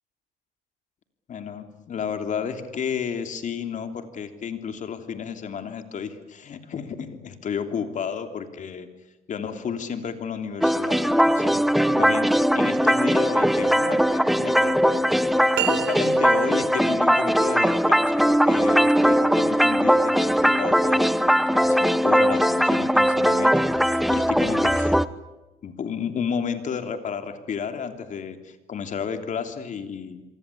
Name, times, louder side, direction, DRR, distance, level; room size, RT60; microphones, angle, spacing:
voice 1, 1.3-8.9 9.3-25.0 25.6-30.2, left 7 dB, 45° left, 7 dB, 3.2 m, -32 dB
sound 1, 10.6-25.1, equal, ahead, 0.9 m, -20 dB
sound 2, 15.5-16.7, right 15 dB, 75° right, 1.4 m, -30 dB
27.5 x 23.5 x 8.6 m, 1.0 s
cardioid pair, 110°, 17 cm